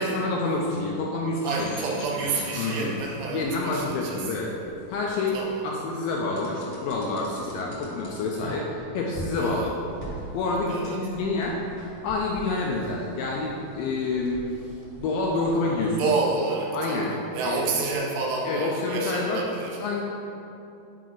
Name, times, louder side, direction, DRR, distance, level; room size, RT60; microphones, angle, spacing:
voice 1, 0.0-1.7 2.6-3.0 3.3-4.5 4.9-5.4 5.6-8.7 8.9-9.7 10.3-11.6 12.0-14.4 15.0-16.1 16.7-17.1 17.4-17.6 18.5-19.4 19.8-20.0, left 3 dB, 85° left, -2 dB, 2.1 m, -28 dB
voice 2, 1.4-4.3 5.3-5.7 9.4-9.7 10.7-11.0 16.0-19.8, right 3 dB, 80° right, -2 dB, 2.4 m, -29 dB
sound 1, 1.6-5.5 6.4-8.8 9.1-9.3 9.8-15.9, right 1 dB, 60° left, 1.3 m, -42 dB
6.3 x 4.6 x 3.9 m, 2.7 s
omnidirectional pair, 4.4 m